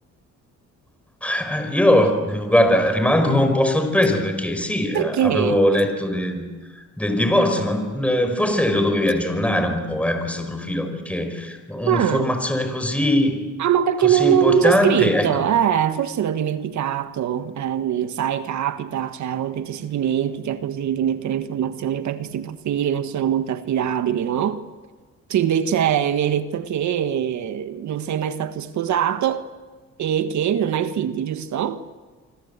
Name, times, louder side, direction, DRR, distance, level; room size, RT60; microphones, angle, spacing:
voice 1, 1.2-6.4 7.0-13.3 14.0-15.3, left 1 dB, 5° left, 5.2 m, -21 dB
voice 2, 4.9-5.6 11.9-12.3 13.6-24.6 25.3-29.5 30.0-31.8, right 9 dB, 70° right, 1.4 m, -22 dB
27.0 x 25.0 x 8.2 m
cardioid pair, 90°, 30 cm